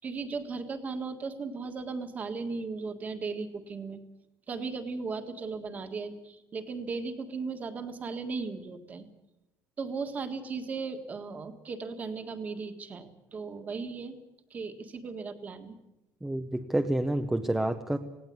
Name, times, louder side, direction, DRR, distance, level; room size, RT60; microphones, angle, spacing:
voice 1, 0.0-4.0 4.5-9.1 9.8-14.2 14.5-15.8, right 4 dB, 25° right, 8 dB, 1.7 m, -36 dB
voice 2, 16.2-18.0, right 1 dB, 5° right, 6 dB, 0.8 m, -28 dB
18.5 x 17.5 x 9.6 m, 0.94 s
cardioid pair, 180°, 7 cm